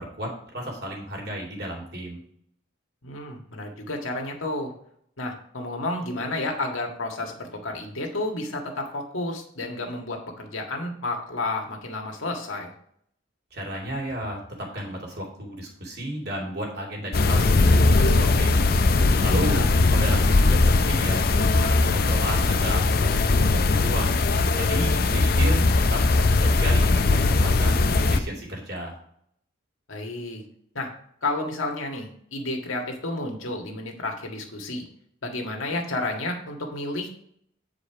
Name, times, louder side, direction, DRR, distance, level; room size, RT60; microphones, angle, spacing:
voice 1, 0.0-2.2 13.5-18.8 19.2-24.2 24.6-25.6 25.9-26.0 26.3-28.9, right 1 dB, 50° right, -1 dB, 2.6 m, -33 dB
voice 2, 3.0-4.7 5.2-12.7 19.4-19.7 29.9-30.4 30.8-30.9 31.2-34.8 35.2-37.1, left 2 dB, 85° left, 2 dB, 1.8 m, -31 dB
sound 1, 17.1-28.2, left 3 dB, 50° left, 0.5 m, -20 dB
8.6 x 4.8 x 4.7 m, 0.67 s
head